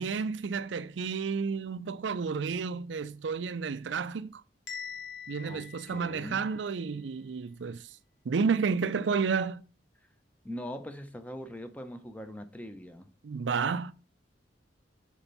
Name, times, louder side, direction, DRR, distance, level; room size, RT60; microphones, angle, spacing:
voice 1, 0.0-4.4 5.3-7.9 8.2-9.6 13.2-13.9, right 5 dB, 90° right, 0.5 m, -31 dB
Bell, 4.7-6.7, left 7 dB, 80° left, 1.8 m, -44 dB
voice 2, 5.4-6.5 10.4-13.1, equal, 10° left, 0.7 m, -42 dB
7.1 x 4.5 x 5.3 m
head